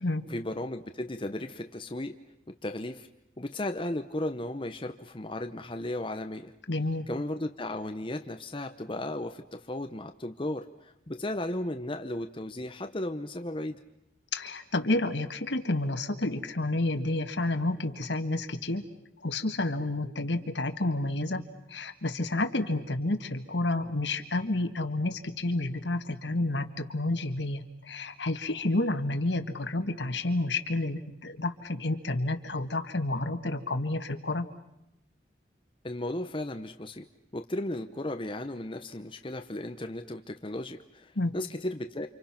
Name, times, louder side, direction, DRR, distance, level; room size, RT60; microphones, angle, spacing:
voice 1, 0.3-2.2 2.5-3.1 3.4-6.5 7.1-13.8 35.8-37.1 37.3-42.1, left 1 dB, 30° left, 7 dB, 0.9 m, -35 dB
voice 2, 6.7-7.1 14.3-18.8 19.2-21.4 21.7-34.4 41.2-41.3, left 2 dB, 75° left, 8 dB, 1.9 m, -30 dB
29.5 x 26.5 x 6.0 m, 0.84 s
head